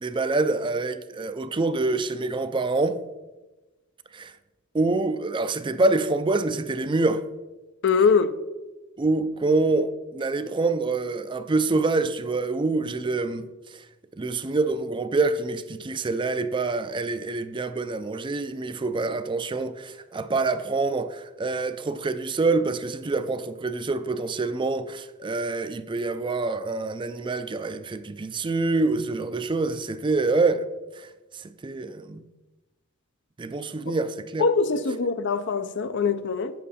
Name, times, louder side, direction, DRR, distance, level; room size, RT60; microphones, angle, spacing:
voice 1, 0.0-3.0 4.1-4.3 4.7-7.2 9.0-13.4 14.2-30.6 31.0-31.1 31.6-32.2 33.4-34.5, right 3 dB, 25° right, 0.4 m, -26 dB
voice 2, 7.8-8.4 34.4-36.5, left 5 dB, 60° left, 0.5 m, -22 dB
9.2 x 7.5 x 4.2 m
head